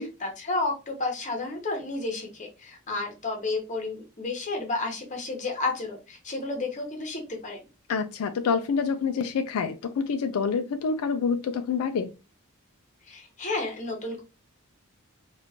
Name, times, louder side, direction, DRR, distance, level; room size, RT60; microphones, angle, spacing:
voice 1, 0.2-7.6 13.1-14.2, left 3 dB, 35° left, 0.9 m, -31 dB
voice 2, 7.9-12.1, left 5 dB, 85° left, 0.4 m, -27 dB
3.6 x 2.4 x 2.8 m
head